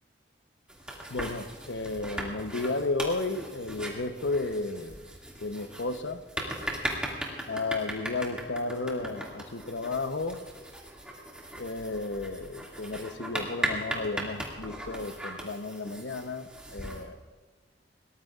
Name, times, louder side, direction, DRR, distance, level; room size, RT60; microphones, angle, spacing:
sound 1, 0.7-17.0, right 1 dB, 5° right, 2.2 m, -38 dB
voice 1, 1.1-5.0 5.4-6.2 7.5-10.4 11.6-17.2, left 3 dB, 80° left, 9 dB, 0.9 m, -33 dB
22.5 x 18.5 x 2.5 m, 1.4 s
head